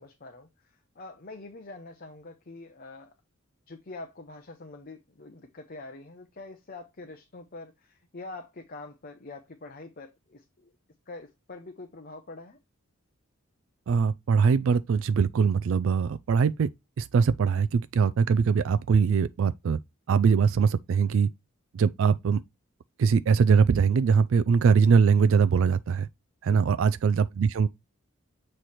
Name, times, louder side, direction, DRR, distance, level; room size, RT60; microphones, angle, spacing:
voice 1, 0.0-3.1 3.7-10.7 11.1-12.6 26.5-26.8, left 2 dB, 45° left, 0.7 m, -45 dB
voice 2, 13.9-16.7 17.0-19.8 20.1-21.3 21.7-22.4 23.0-26.1 26.4-27.7, right 6 dB, 65° right, 0.3 m, -22 dB
7.6 x 3.2 x 4.2 m
head